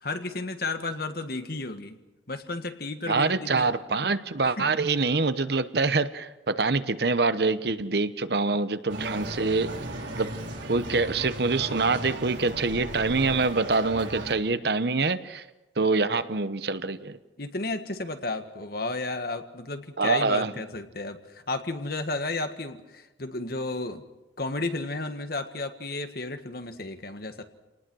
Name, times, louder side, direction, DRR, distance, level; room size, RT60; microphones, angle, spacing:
voice 1, 0.0-2.0 2.3-3.7 4.6-4.7 17.4-24.0 24.4-27.4, left 2 dB, 55° left, 7 dB, 1.7 m, -33 dB
voice 2, 3.1-9.7 10.1-10.3 10.7-15.5 15.8-17.2 20.0-20.5, right 3 dB, 55° right, 12 dB, 0.9 m, -25 dB
sound 1, 8.9-14.3, right 1 dB, 75° right, 3.8 m, -36 dB
28.5 x 19.0 x 6.3 m, 1.0 s
head